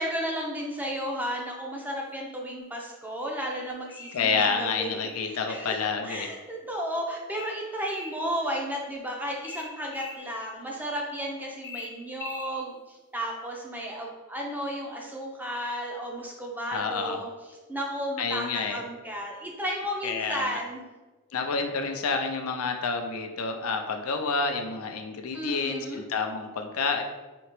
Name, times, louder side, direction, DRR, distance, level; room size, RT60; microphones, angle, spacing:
voice 1, 0.0-5.8 6.0-17.3 17.7-20.8 25.3-26.0, equal, 10° right, -1 dB, 0.5 m, -33 dB
sound 1, 3.4-4.2 5.0-5.8 7.3-8.2 9.4-10.2 11.6-12.5, left 3 dB, 45° left, 0.8 m, -42 dB
voice 2, 4.1-6.3 16.7-17.2 18.2-18.8 20.0-20.6 21.3-27.0, left 4 dB, 70° left, 5 dB, 0.4 m, -29 dB
4.3 x 2.8 x 3.0 m, 1.2 s
head